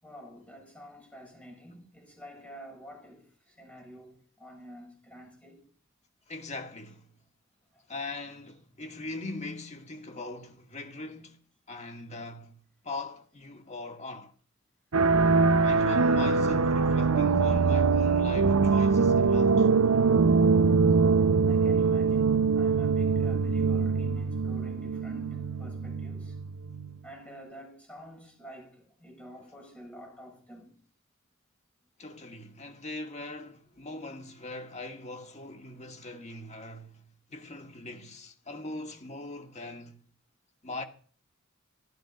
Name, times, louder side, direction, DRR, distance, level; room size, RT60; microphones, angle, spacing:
voice 1, 0.0-5.6 7.7-7.8 11.9-12.1 21.5-26.4 27.0-30.8, equal, 5° left, 6.8 m, -48 dB
voice 2, 6.3-7.1 7.9-11.4 11.7-14.3 15.6-19.7 29.4-29.5 32.0-40.0 40.6-40.8, left 2 dB, 30° left, 1.9 m, -41 dB
sound 1, 14.9-27.0, right 4 dB, 75° right, 0.7 m, -23 dB
14.5 x 12.5 x 5.3 m
head